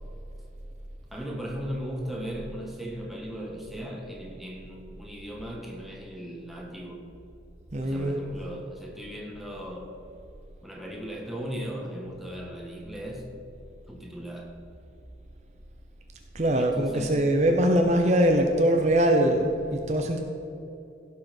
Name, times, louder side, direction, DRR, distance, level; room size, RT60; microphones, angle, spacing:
voice 1, 1.1-7.0 7.8-10.0 10.6-13.2 13.9-14.5 16.6-17.2, equal, ahead, -1 dB, 1.5 m, -37 dB
voice 2, 7.7-8.2 16.3-20.2, right 1 dB, 40° right, 3 dB, 0.8 m, -22 dB
16.0 x 5.7 x 6.0 m, 2.8 s
head